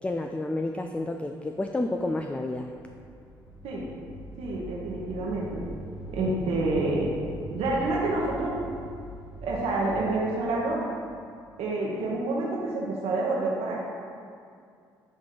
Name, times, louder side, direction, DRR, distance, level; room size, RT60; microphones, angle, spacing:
voice 1, 0.0-2.8, left 2 dB, 10° left, 5 dB, 0.3 m, -30 dB
sound 1, 2.7-11.9, left 1 dB, 35° left, 1.3 m, -43 dB
voice 2, 4.4-5.6 6.1-7.1 7.5-8.5 9.4-10.8 11.6-13.8, right 2 dB, 65° right, -3 dB, 1.0 m, -28 dB
9.3 x 3.2 x 3.8 m, 2.3 s
hypercardioid pair, 45°, 11 cm